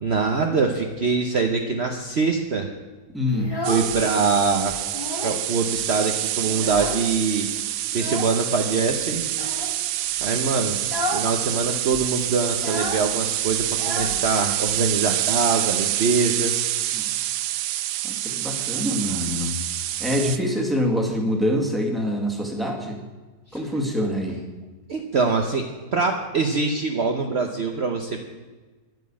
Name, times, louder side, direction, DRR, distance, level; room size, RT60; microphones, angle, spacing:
voice 1, 0.0-2.7 3.7-4.8 5.2-7.5 7.9-9.2 10.2-10.8 11.1-16.5 24.9-28.3, right 4 dB, 45° right, 3 dB, 1.1 m, -24 dB
voice 2, 3.1-3.5 16.9-17.1 18.0-19.6 20.0-23.0 23.5-24.4, left 1 dB, ahead, 1 dB, 1.9 m, -25 dB
Child speech kid speaking, 3.3-4.3 4.7-5.5 5.7-5.8 6.2-7.3 7.9-8.4 9.3-9.8 10.2-10.4 10.8-11.3 11.6-11.7 11.9-14.7, left 2 dB, 15° left, 1.5 m, -32 dB
sound 1, 3.6-20.4, right 13 dB, 85° right, 1.2 m, -27 dB
11.0 x 9.4 x 8.6 m, 1.3 s
omnidirectional pair, 1.7 m